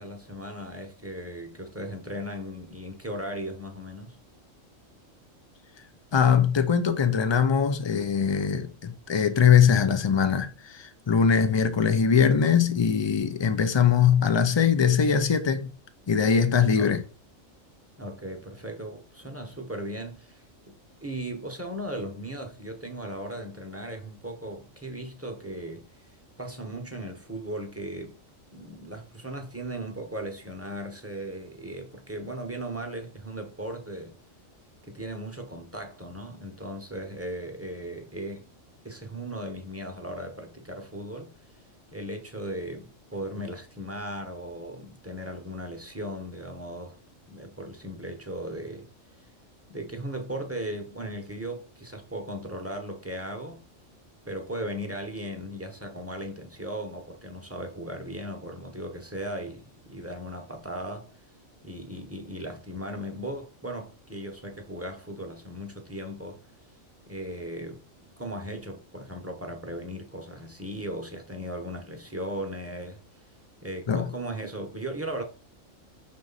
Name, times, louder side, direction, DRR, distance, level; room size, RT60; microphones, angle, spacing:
voice 1, 0.0-4.2 16.7-17.0 18.0-20.4 21.0-25.9 26.4-28.2 28.5-34.2 34.8-38.5 38.8-41.3 41.9-47.0 47.3-48.9 49.7-53.6 54.3-61.1 61.6-66.4 67.1-67.8 68.2-73.0 73.6-75.2, right 1 dB, 10° right, 0.9 m, -37 dB
voice 2, 6.1-15.7 16.1-17.0 73.9-74.1, left 7 dB, 45° left, 0.3 m, -22 dB
6.1 x 3.8 x 4.0 m
omnidirectional pair, 1.4 m